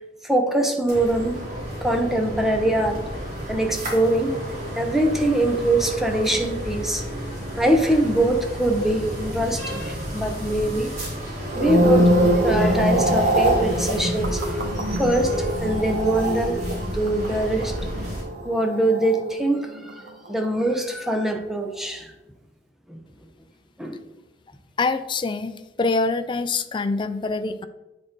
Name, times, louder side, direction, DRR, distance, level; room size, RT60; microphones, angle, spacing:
voice 1, 0.2-1.4 1.8-3.0 3.5-4.3 4.8-7.0 7.6-10.9 11.5-12.1 12.4-14.5 15.0-16.6 16.9-17.7 18.4-20.0 20.3-22.1 22.9-23.0 23.8-24.0, right 1 dB, ahead, 3 dB, 0.7 m, -23 dB
sound 1, 0.9-18.2, equal, 40° right, 2.3 m, -32 dB
sound 2, 11.4-19.8 20.1-20.5, right 1 dB, 70° right, 1.1 m, -24 dB
voice 2, 24.8-27.7, left 3 dB, 25° left, 10 dB, 0.4 m, -25 dB
8.3 x 3.8 x 3.8 m, 1.0 s
head